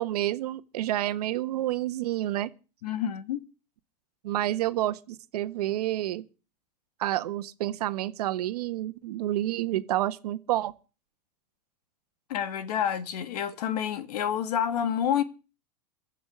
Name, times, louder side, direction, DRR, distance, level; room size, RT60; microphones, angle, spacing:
voice 1, 0.0-2.5 4.2-6.2 7.0-10.7, right 14 dB, 70° right, 1.5 m, -29 dB
voice 2, 2.8-3.4 12.3-15.2, left 9 dB, 70° left, 2.0 m, -28 dB
15.5 x 6.0 x 9.6 m
supercardioid pair, 165°, 20 cm